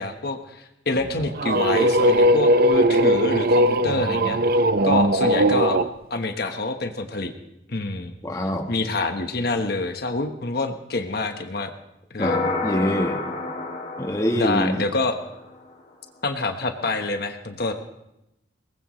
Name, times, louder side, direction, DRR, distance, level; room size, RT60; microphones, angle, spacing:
voice 1, 0.0-4.4 4.8-5.8 6.1-7.3 7.7-8.1 8.7-11.7 12.1-12.5 14.4-15.2 16.2-17.7, left 3 dB, 60° left, 5 dB, 1.2 m, -26 dB
sound 1, 1.0-5.9, right 1 dB, 55° right, 0.6 m, -19 dB
voice 2, 8.2-8.7 12.2-13.2 14.0-14.8, equal, 20° left, 3 dB, 1.3 m, -25 dB
sound 2, 12.2-15.6, left 3 dB, 40° left, 3.0 m, -29 dB
22.5 x 19.5 x 3.2 m, 0.85 s
head